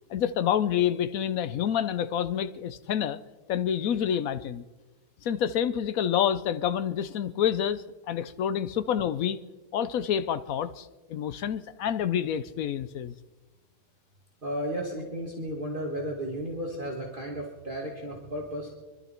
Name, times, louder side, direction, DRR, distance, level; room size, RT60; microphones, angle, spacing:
voice 1, 0.1-3.2 3.5-4.6 5.2-9.4 9.7-13.1, left 9 dB, 70° left, 13 dB, 0.8 m, -28 dB
voice 2, 14.4-18.7, equal, 25° right, -1 dB, 2.1 m, -34 dB
24.5 x 12.5 x 4.4 m, 1.2 s
omnidirectional pair, 2.0 m